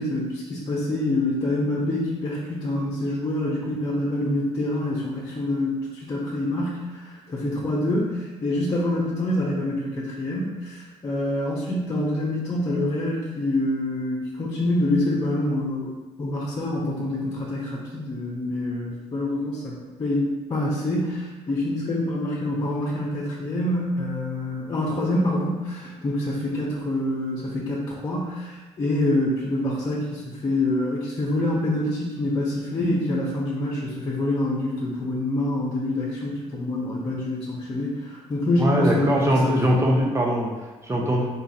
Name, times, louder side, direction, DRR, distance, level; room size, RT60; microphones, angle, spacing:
voice 1, 0.0-40.0, left 1 dB, 35° left, -5 dB, 1.0 m, -26 dB
voice 2, 38.6-41.3, equal, 20° right, -1 dB, 1.0 m, -22 dB
4.0 x 3.7 x 2.8 m, 1.2 s
supercardioid pair, 80°, 13 cm